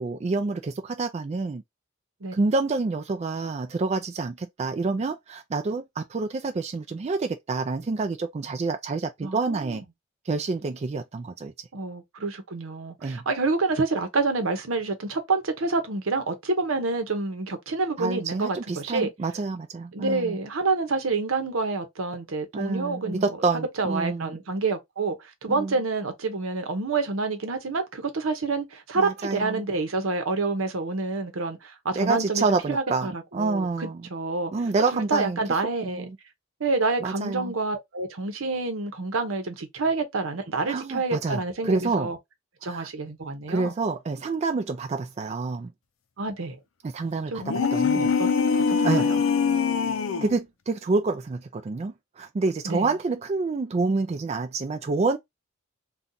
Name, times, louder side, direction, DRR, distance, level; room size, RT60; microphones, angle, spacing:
voice 1, 0.0-1.6 2.3-9.8 10.3-11.5 13.0-13.2 18.0-20.4 22.5-24.4 25.5-25.7 29.0-29.6 31.9-34.0 34.5-35.4 35.8-36.1 37.0-37.5 40.7-42.1 42.6-42.9 43.5-45.7 46.9-48.1 48.8-49.1 50.2-55.2, right 3 dB, 30° right, 0.3 m, -28 dB
voice 2, 9.2-9.8 11.7-19.1 19.9-23.3 23.8-34.5 34.9-36.1 36.6-42.2 42.6-43.7 46.2-46.6 47.3-47.4 47.9-48.3 48.7-49.2 52.6-52.9, right 3 dB, 85° right, 0.8 m, -28 dB
sound 1, 47.4-50.4, left 5 dB, 80° left, 0.5 m, -23 dB
2.6 x 2.3 x 3.7 m
head